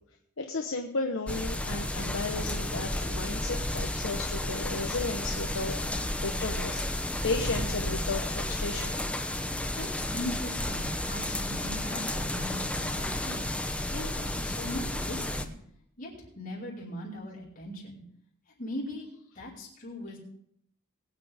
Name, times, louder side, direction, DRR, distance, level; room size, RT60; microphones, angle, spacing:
voice 1, 0.4-9.0, left 3 dB, 65° left, 2 dB, 1.2 m, -34 dB
sound 1, 1.3-15.4, left 1 dB, 5° left, 0.8 m, -32 dB
voice 2, 9.7-13.4 13.9-15.5 16.0-18.0 18.6-19.1 19.3-20.2, left 1 dB, 40° left, -5 dB, 4.9 m, -39 dB
22.0 x 8.7 x 3.6 m, 0.69 s
head